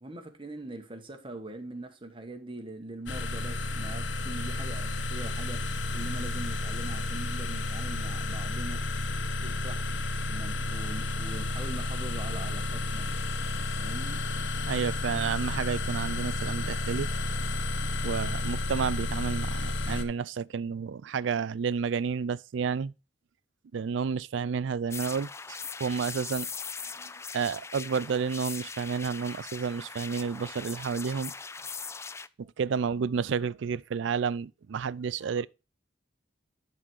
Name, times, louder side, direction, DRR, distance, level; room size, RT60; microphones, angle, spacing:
voice 1, 0.0-5.6 5.9-8.8 9.1-9.9 10.3-13.1 13.8-14.2, right 2 dB, 25° right, 1.4 m, -42 dB
sound 1, 3.1-20.0, left 2 dB, 70° left, 1.0 m, -31 dB
voice 2, 14.7-17.1 18.0-22.9 23.7-26.5 27.3-31.3 32.4-35.5, right 6 dB, 70° right, 0.4 m, -31 dB
sound 2, 24.9-32.3, left 5 dB, 15° left, 0.3 m, -40 dB
11.0 x 4.2 x 4.6 m
head